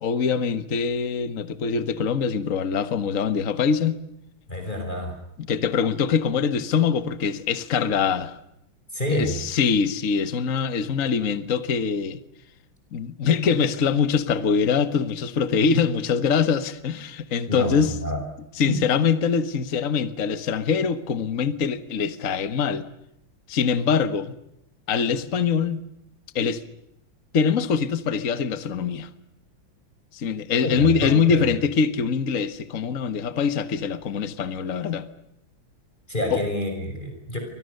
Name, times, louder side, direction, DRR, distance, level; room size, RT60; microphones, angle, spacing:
voice 1, 0.0-4.0 5.5-8.4 9.1-12.2 12.9-17.9 18.6-22.9 23.5-24.3 24.9-25.9 26.4-26.6 27.3-29.1 30.1-35.1 36.3-36.4, left 6 dB, 45° left, 1.7 m, -23 dB
voice 2, 4.5-5.2 8.9-9.4 17.5-18.2 18.6-18.8 30.6-31.5 36.1-37.4, equal, 20° left, 6.0 m, -28 dB
29.0 x 25.0 x 6.7 m
omnidirectional pair, 2.2 m